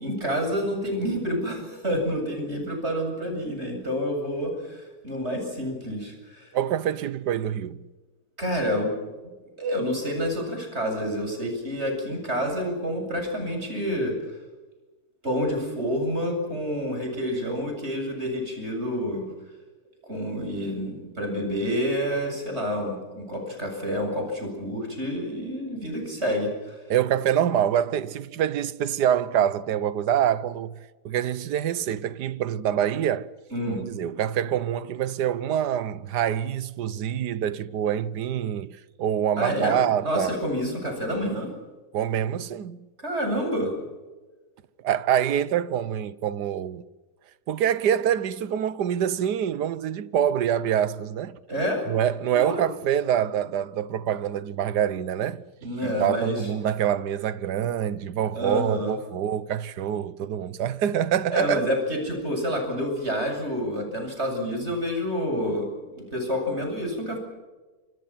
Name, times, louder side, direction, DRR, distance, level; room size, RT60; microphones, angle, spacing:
voice 1, 0.0-6.5 8.4-8.9 9.6-14.1 15.2-19.3 20.1-26.8 33.5-33.8 39.4-39.8 40.0-41.5 43.0-43.7 51.5-51.8 52.3-52.6 55.6-56.4 58.3-58.9 61.3-67.2, equal, 30° right, 8.2 m, -28 dB
voice 2, 6.5-7.9 26.9-30.8 31.0-33.3 33.7-40.4 41.9-42.8 44.8-46.8 47.5-51.4 51.9-55.4 55.8-61.7, right 10 dB, 55° right, 1.4 m, -25 dB
28.0 x 26.5 x 5.9 m
omnidirectional pair, 2.4 m